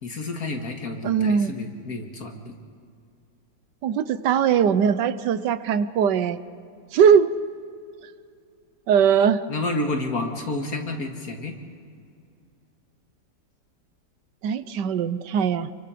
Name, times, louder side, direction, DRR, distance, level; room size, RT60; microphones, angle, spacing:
voice 1, 0.0-2.5 9.5-11.6, left 2 dB, 60° left, 3 dB, 2.5 m, -30 dB
voice 2, 1.0-1.5 3.8-6.4 6.9-7.3 8.9-9.4 14.4-15.7, right 7 dB, 90° right, 14 dB, 1.5 m, -20 dB
28.5 x 23.5 x 5.1 m, 2.4 s
omnidirectional pair, 1.8 m